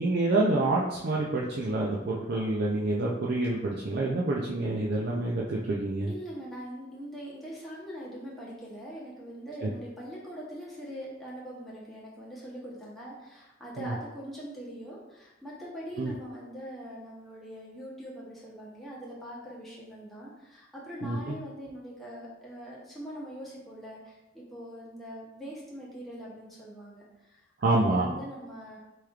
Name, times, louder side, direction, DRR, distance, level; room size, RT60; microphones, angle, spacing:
voice 1, 0.0-6.1 9.6-9.7 13.8-13.9 16.0-16.1 21.0-21.4 27.6-28.1, right 2 dB, 55° right, -4 dB, 0.4 m, -27 dB
voice 2, 6.1-27.4 27.8-28.8, equal, ahead, -7 dB, 0.9 m, -42 dB
4.8 x 3.0 x 2.4 m, 1.0 s
head